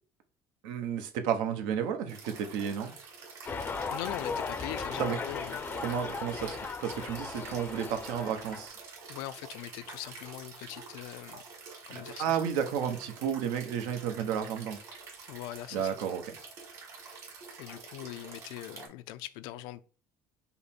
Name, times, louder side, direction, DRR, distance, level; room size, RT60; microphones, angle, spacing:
voice 1, 0.6-2.9 4.9-5.2 5.8-6.6 6.8-8.8 11.9-14.8 15.7-16.3, right 8 dB, 85° right, 0.8 m, -32 dB
sound 1, 2.1-18.9, right 4 dB, 50° right, 2.0 m, -48 dB
sound 2, 3.5-8.7, left 4 dB, 25° left, 0.5 m, -37 dB
voice 2, 3.9-5.7 9.1-11.4 11.9-12.3 15.3-16.0 17.6-19.8, left 15 dB, 85° left, 0.4 m, -41 dB
5.3 x 2.1 x 4.3 m
cardioid pair, 135°, 8 cm